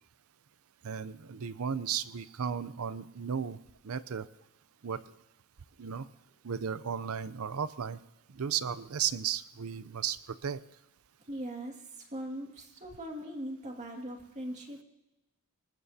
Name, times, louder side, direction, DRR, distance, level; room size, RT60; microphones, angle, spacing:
voice 1, 0.8-3.6 3.8-4.3 4.8-5.0 5.8-6.1 6.4-8.0 8.3-10.6, right 7 dB, 75° right, 15 dB, 0.6 m, -35 dB
voice 2, 11.3-11.7 12.1-14.8, right 1 dB, 35° right, 2 dB, 2.2 m, -40 dB
25.5 x 19.5 x 2.8 m, 0.98 s
head